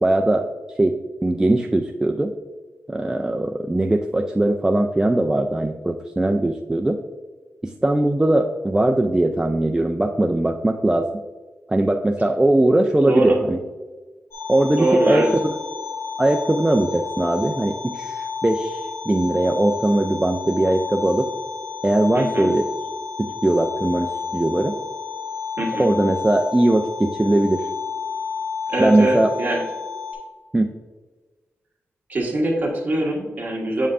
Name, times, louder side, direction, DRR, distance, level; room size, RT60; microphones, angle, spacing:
voice 1, 0.0-0.5 0.8-2.3 2.9-7.0 7.6-11.1 11.7-13.6 14.5-15.5 16.2-21.3 21.8-22.7 23.2-24.7 25.8-27.7 28.8-29.3 30.5-30.7, right 1 dB, 15° right, 2 dB, 0.3 m, -20 dB
voice 2, 13.0-13.4 14.8-15.3 22.1-22.5 25.6-25.9 28.7-29.6 32.1-33.9, right 1 dB, 35° right, -2 dB, 1.6 m, -22 dB
sound 1, 14.3-30.1, left 6 dB, 60° left, 1.5 m, -31 dB
7.8 x 5.4 x 2.5 m, 1.3 s
wide cardioid pair, 120°, 5 cm